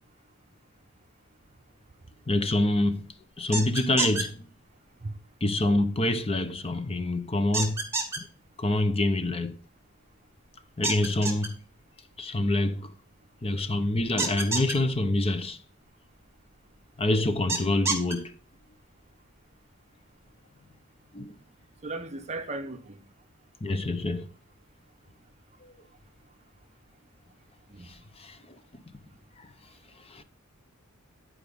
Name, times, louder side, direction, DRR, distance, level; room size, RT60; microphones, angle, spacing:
voice 1, 2.3-3.1 3.4-4.4 5.4-7.8 8.2-8.3 8.6-9.5 10.8-11.5 12.2-12.9 13.4-15.6 17.0-18.3 21.1-21.3 23.6-24.3 25.6-25.7 28.2-28.4 29.4-29.5 30.1-30.2, left 1 dB, 30° left, 0.8 m, -26 dB
sound 1, 3.5-4.2 7.5-8.2 10.8-11.5 14.2-14.7 17.5-18.1, right 3 dB, 15° right, 2.0 m, -28 dB
voice 2, 21.8-23.0 27.7-27.9, right 2 dB, 30° right, 0.8 m, -36 dB
10.5 x 4.9 x 5.2 m
head